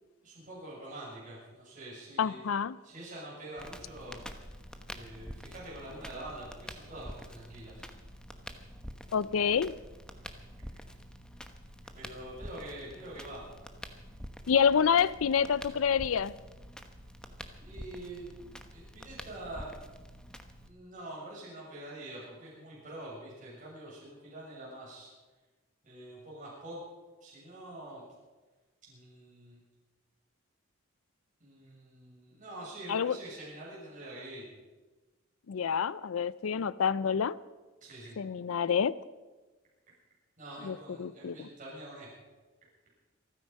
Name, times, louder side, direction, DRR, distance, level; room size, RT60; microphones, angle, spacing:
voice 1, 0.2-2.4 2.8-4.2 4.9-7.9 11.9-13.4 17.6-18.4 18.7-19.7 20.7-25.1 25.8-26.8 27.2-28.1 28.9-29.6 31.4-34.5 37.8-38.2 40.4-42.1, right 1 dB, 40° right, 6.9 m, -45 dB
voice 2, 2.2-2.8 9.1-9.7 14.5-16.3 32.9-33.2 35.5-37.4 38.2-38.9 40.6-41.4, left 7 dB, 80° left, 0.4 m, -28 dB
Crackle, 3.6-20.7, equal, 5° left, 1.0 m, -47 dB
27.5 x 9.9 x 5.3 m
head